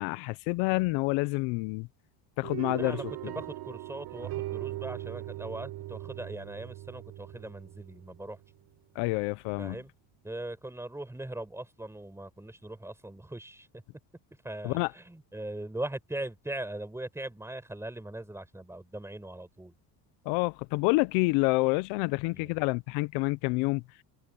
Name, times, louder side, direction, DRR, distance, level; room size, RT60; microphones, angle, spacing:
voice 1, 0.0-1.9 2.4-3.0 9.0-9.8 14.6-14.9 20.3-23.8, left 25 dB, 75° left, 0.7 m, -28 dB
sound 1, 2.4-8.7, right 16 dB, 60° right, 5.3 m, -39 dB
voice 2, 2.7-8.4 9.6-9.9 10.2-13.8 14.4-19.8 22.3-22.6, right 1 dB, 5° right, 5.9 m, -40 dB
cardioid pair, 130°, 45 cm